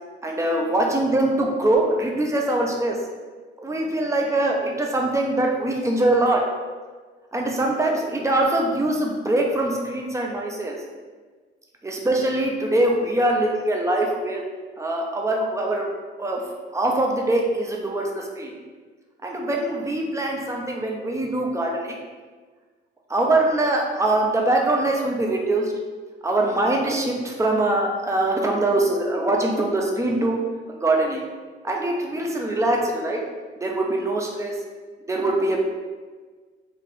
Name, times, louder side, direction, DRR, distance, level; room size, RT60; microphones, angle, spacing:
voice 1, 0.2-3.0 3.6-6.4 7.3-10.8 11.8-14.4 14.8-15.9 16.2-16.4 16.7-18.5 19.2-22.0 23.1-25.7 26.2-30.4 30.7-31.2 31.6-33.2 33.6-34.5 35.1-35.7, right 2 dB, 15° right, 0 dB, 0.7 m, -23 dB
4.2 x 2.5 x 3.4 m, 1.4 s
cardioid pair, 90°, 20 cm